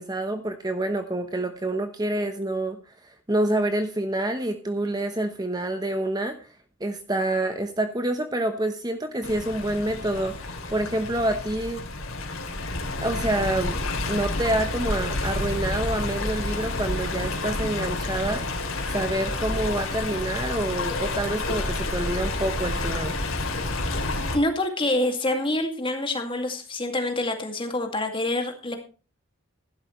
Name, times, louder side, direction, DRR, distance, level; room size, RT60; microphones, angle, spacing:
voice 1, 0.0-6.5 6.8-11.9 13.0-13.8 14.1-18.4 18.9-23.2, right 1 dB, 20° right, 7 dB, 1.0 m, -27 dB
Stream, 9.2-24.4, left 2 dB, 80° left, 3.2 m, -29 dB
voice 2, 24.3-28.8, left 1 dB, 25° left, 4 dB, 2.3 m, -26 dB
15.5 x 11.5 x 3.2 m, 0.35 s
head